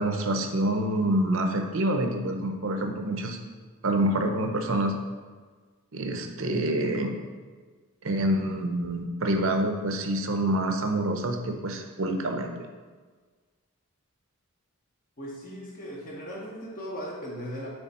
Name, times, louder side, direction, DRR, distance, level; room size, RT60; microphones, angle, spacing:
voice 1, 0.0-3.4 3.8-4.9 5.9-7.1 8.0-12.5, right 1 dB, 65° right, 4 dB, 0.7 m, -27 dB
voice 2, 15.2-17.7, equal, 40° left, -4 dB, 1.0 m, -37 dB
8.1 x 3.4 x 4.2 m, 1.5 s
head